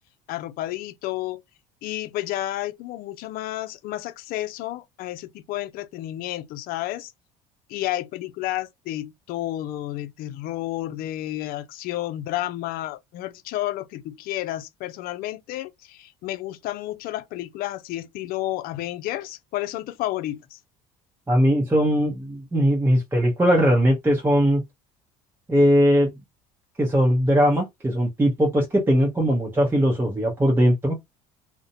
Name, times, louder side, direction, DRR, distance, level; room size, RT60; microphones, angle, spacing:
voice 1, 0.3-1.4 1.8-7.1 7.7-20.6, left 15 dB, 60° left, 0.5 m, -31 dB
voice 2, 21.3-24.6 25.5-26.1 26.8-31.0, equal, 15° right, 0.8 m, -20 dB
2.4 x 2.1 x 2.7 m
supercardioid pair, 90°, 17 cm